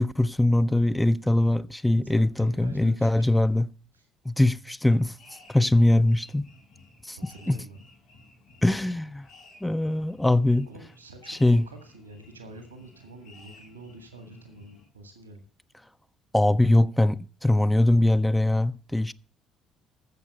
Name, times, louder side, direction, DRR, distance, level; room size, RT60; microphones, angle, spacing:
voice 1, 0.0-3.7 4.3-5.1 5.5-6.5 7.0-7.6 8.6-9.3 9.6-10.7 11.3-11.7 16.3-19.1, left 1 dB, 5° left, 0.5 m, -22 dB
voice 2, 2.0-3.3 3.9-4.1 7.2-7.8 10.7-15.5, right 1 dB, 85° right, 1.5 m, -47 dB
sound 1, 4.9-14.9, left 3 dB, 65° left, 6.5 m, -55 dB
13.5 x 7.4 x 6.5 m
figure-of-eight pair, 50°, 0 cm